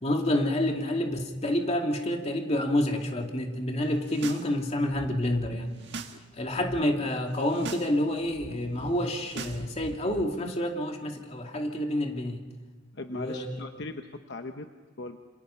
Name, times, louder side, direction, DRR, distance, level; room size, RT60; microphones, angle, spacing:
voice 1, 0.0-5.7 6.3-12.4 13.1-13.6, left 1 dB, 35° left, 2 dB, 2.5 m, -28 dB
sound 1, 3.9-4.5 4.7-6.2 6.4-6.8 7.3-7.9 8.2-10.2, right 3 dB, 65° right, 1.7 m, -42 dB
voice 2, 12.9-15.2, left 2 dB, 60° left, 6 dB, 1.0 m, -39 dB
28.0 x 26.5 x 5.7 m, 1.3 s
head